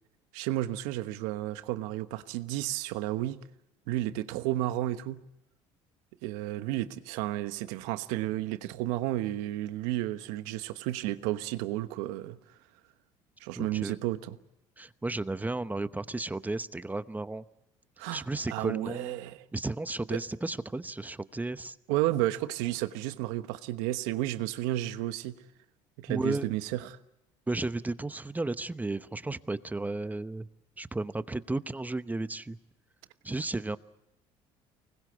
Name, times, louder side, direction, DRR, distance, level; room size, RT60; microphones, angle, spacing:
voice 1, 0.3-3.4 3.9-5.2 6.2-12.4 13.4-14.4 18.0-18.2 18.5-19.4 21.9-25.4 26.0-27.0, right 15 dB, 85° right, 1.1 m, -32 dB
voice 2, 13.6-14.0 14.8-17.4 18.1-19.2 19.5-21.8 26.1-26.5 27.5-30.5 30.8-32.6 33.2-33.8, right 2 dB, 10° right, 0.9 m, -33 dB
25.0 x 20.0 x 8.0 m
supercardioid pair, 80°, 13 cm